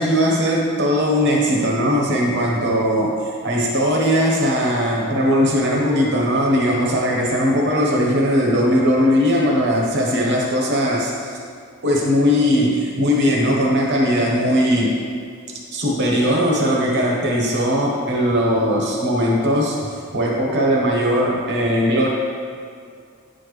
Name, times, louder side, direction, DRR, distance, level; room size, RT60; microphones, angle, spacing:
voice 1, 0.0-11.3 11.8-15.0 15.7-19.8 20.1-22.1, equal, 55° right, -2 dB, 1.1 m, -19 dB
9.4 x 4.4 x 3.2 m, 2.3 s
head